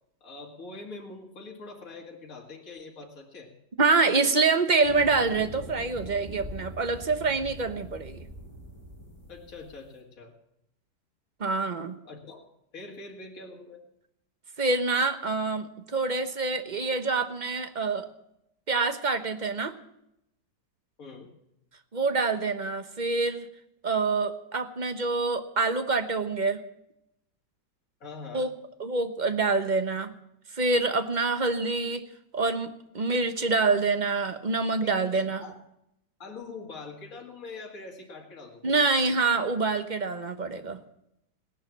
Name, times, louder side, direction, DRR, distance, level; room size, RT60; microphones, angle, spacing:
voice 1, 0.2-3.5 9.3-10.3 12.0-12.4 12.7-13.8 21.0-21.3 28.0-28.5 34.8-34.9 35.4-35.6 36.2-38.9, left 3 dB, 55° left, -2 dB, 2.6 m, -43 dB
voice 2, 3.8-8.2 11.4-12.0 14.6-18.1 18.7-19.7 21.9-23.5 23.8-26.6 28.3-28.5 28.8-30.1 30.5-32.0 32.3-35.4 38.6-40.8, right 3 dB, 35° right, 9 dB, 0.9 m, -26 dB
sound 1, 4.8-9.8, equal, 10° left, 4.5 m, -43 dB
17.5 x 11.0 x 7.2 m, 0.81 s
omnidirectional pair, 1.8 m